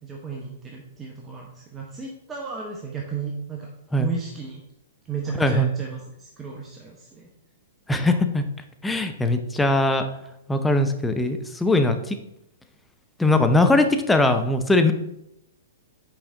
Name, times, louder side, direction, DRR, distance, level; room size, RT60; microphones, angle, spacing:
voice 1, 0.0-3.7 4.0-4.6 5.1-7.3, right 5 dB, 20° right, -1 dB, 0.9 m, -34 dB
voice 2, 5.4-5.7 7.9-8.5 8.8-10.1 10.5-12.2 13.2-14.9, left 2 dB, 5° left, 6 dB, 0.6 m, -20 dB
5.9 x 4.8 x 3.8 m, 0.81 s
figure-of-eight pair, 110°, 0 cm